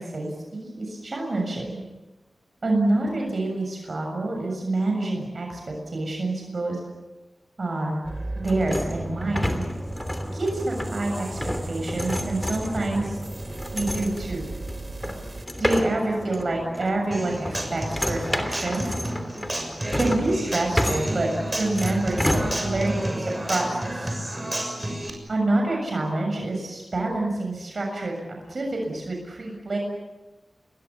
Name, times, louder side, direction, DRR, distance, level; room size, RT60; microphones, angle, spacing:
voice 1, 0.0-1.8 2.6-6.8 7.6-8.0 8.4-9.6 10.3-13.2 13.7-14.5 15.6-18.9 19.9-21.3 21.6-24.1 25.3-28.2 28.5-29.8, right 2 dB, 55° right, 1 dB, 7.0 m, -27 dB
sound 1, 8.0-15.5, right 1 dB, 35° right, 3.1 m, -35 dB
sound 2, 8.4-23.0, left 1 dB, 10° left, 3.0 m, -31 dB
Human voice / Acoustic guitar, 17.1-25.1, right 1 dB, 15° right, 6.7 m, -31 dB
29.5 x 21.5 x 7.2 m, 1.1 s
wide cardioid pair, 80°, 0 cm